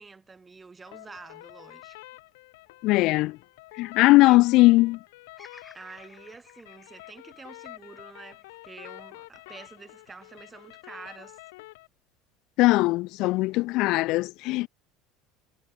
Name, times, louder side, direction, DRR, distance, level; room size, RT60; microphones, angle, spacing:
voice 1, 0.0-2.0 4.2-4.5 5.7-11.4, right 4 dB, 20° right, 5.1 m, -47 dB
sound 1, 0.9-11.9, left 22 dB, 80° left, 3.8 m, -48 dB
voice 2, 2.8-3.4 3.8-5.0 12.6-14.7, left 20 dB, 65° left, 0.3 m, -20 dB
Bird vocalization bird call bird song, 5.4-9.6 10.1-10.9, left 3 dB, 15° left, 4.5 m, -55 dB
supercardioid pair, 95°, 0 cm